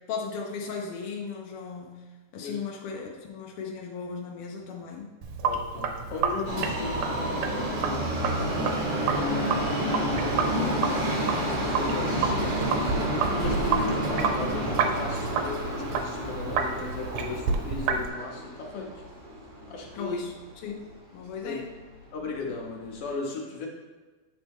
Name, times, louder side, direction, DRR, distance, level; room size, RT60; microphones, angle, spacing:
voice 1, 0.1-2.0 2.3-5.1 10.1-10.2 20.0-20.3 20.6-20.8 21.1-21.7, left 5 dB, 80° left, 0 dB, 1.3 m, -36 dB
Sink (filling or washing), 5.2-18.1, right 5 dB, 85° right, 2.0 m, -30 dB
voice 2, 5.4-8.5 9.2-18.9 19.7-20.2 21.4-21.6 22.1-23.7, left 4 dB, 65° left, -1 dB, 1.7 m, -36 dB
Subway metro underground, 6.4-20.6 20.9-21.0 21.8-21.9 22.2-22.3 22.9-23.0, right 1 dB, 60° right, 1.2 m, -30 dB
8.1 x 4.2 x 3.5 m, 1.3 s
omnidirectional pair, 3.4 m